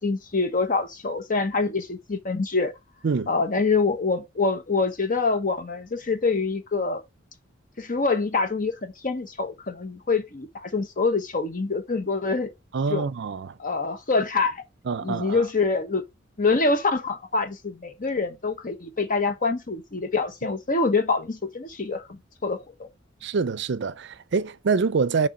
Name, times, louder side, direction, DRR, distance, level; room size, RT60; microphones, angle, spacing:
voice 1, 0.0-2.7 3.3-7.0 7.8-12.5 12.9-13.1 13.6-14.6 15.0-16.0 16.4-22.9, left 4 dB, 45° left, 1.0 m, -25 dB
voice 2, 12.7-13.5 14.9-15.4 23.2-25.3, right 5 dB, 60° right, 0.5 m, -25 dB
6.5 x 3.6 x 5.9 m
head